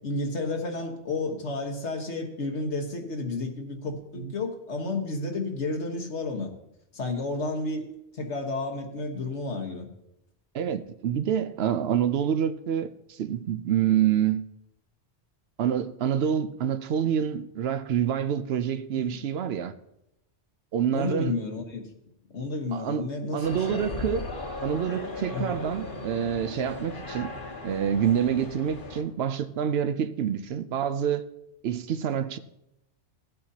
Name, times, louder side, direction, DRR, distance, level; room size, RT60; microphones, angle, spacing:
voice 1, 0.0-6.5 6.9-9.9 19.1-19.2 20.9-21.9 22.3-23.9 25.3-25.6, left 2 dB, 80° left, 1.6 m, -31 dB
voice 2, 10.5-12.9 13.2-14.4 15.6-19.7 20.7-21.3 22.7-23.1 23.3-24.3 24.6-27.3 27.6-31.2 31.6-32.4, right 9 dB, 70° right, 0.8 m, -27 dB
sound 1, 23.4-29.0, left 2 dB, 50° left, 1.3 m, -37 dB
17.0 x 8.8 x 2.8 m
omnidirectional pair, 1.1 m